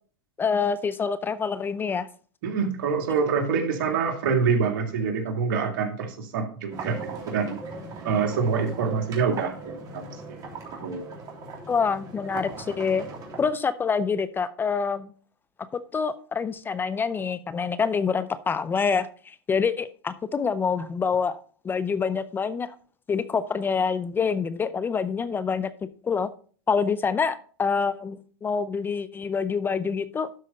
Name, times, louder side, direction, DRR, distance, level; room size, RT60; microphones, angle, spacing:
voice 1, 0.4-2.1 11.7-13.0 13.4-15.1 15.9-21.4 21.6-22.7 23.1-25.7 26.0-26.3 26.7-30.3, left 5 dB, 15° left, 14 dB, 0.5 m, -26 dB
voice 2, 2.4-7.6 8.0-10.4 10.8-11.2, right 5 dB, 60° right, 4 dB, 2.2 m, -26 dB
sound 1, 6.7-13.5, right 3 dB, 30° right, 3.0 m, -39 dB
12.0 x 4.9 x 4.2 m, 0.42 s
hypercardioid pair, 115°, 12 cm